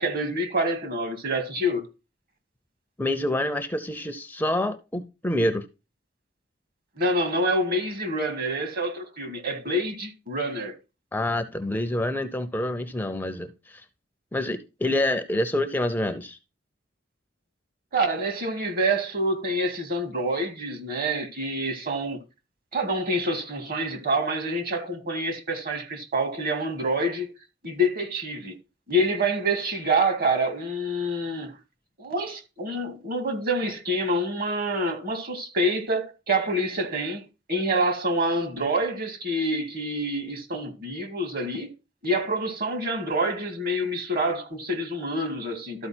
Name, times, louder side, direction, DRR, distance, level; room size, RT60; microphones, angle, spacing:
voice 1, 0.0-1.8 7.0-10.7 17.9-22.2 22.7-27.3 27.6-28.6 28.9-31.5 32.0-37.2 37.5-41.7 42.0-45.9, right 1 dB, 50° right, 2.0 m, -27 dB
voice 2, 3.0-5.7 11.1-13.8 14.3-16.4, left 1 dB, 10° left, 0.5 m, -27 dB
13.0 x 4.6 x 4.3 m
head